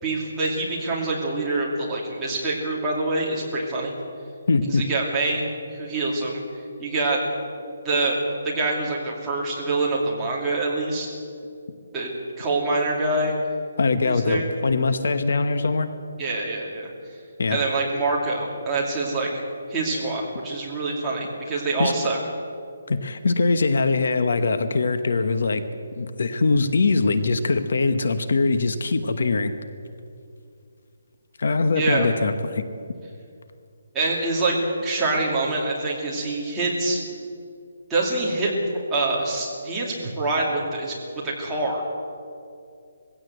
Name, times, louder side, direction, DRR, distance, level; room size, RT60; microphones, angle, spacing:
voice 1, 0.0-3.9 4.7-5.4 5.7-6.4 6.8-7.2 7.8-8.2 8.4-11.2 11.9-12.1 12.4-13.3 14.0-14.5 16.2-16.9 17.5-19.3 19.7-22.2 31.8-32.1 33.9-37.0 37.9-38.5 38.9-40.9 41.2-41.9, right 2 dB, 10° right, -5 dB, 2.6 m, -25 dB
voice 2, 4.5-4.8 13.8-15.9 17.4-17.6 21.8-21.9 22.9-25.6 25.9-29.5 31.4-32.6, left 3 dB, 55° left, 10 dB, 1.1 m, -22 dB
21.0 x 16.0 x 8.1 m, 2.4 s
hypercardioid pair, 180°, 0 cm